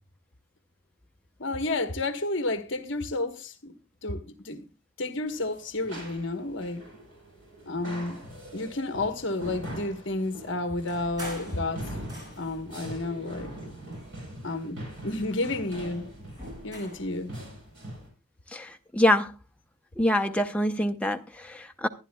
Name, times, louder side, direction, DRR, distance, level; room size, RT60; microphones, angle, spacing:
voice 1, 1.4-4.7 5.0-6.8 7.7-8.2 8.5-11.9 12.4-13.5 14.4-16.1 16.6-17.3, left 2 dB, 60° left, 1.1 m, -31 dB
sound 1, 5.3-18.1, right 1 dB, 60° right, 6.7 m, -42 dB
sound 2, 10.9-12.7 13.4-14.6 14.9-17.1, left 1 dB, 20° right, 6.0 m, -46 dB
voice 2, 18.5-19.3 20.0-21.9, left 1 dB, 5° left, 0.6 m, -25 dB
23.0 x 10.5 x 2.2 m
head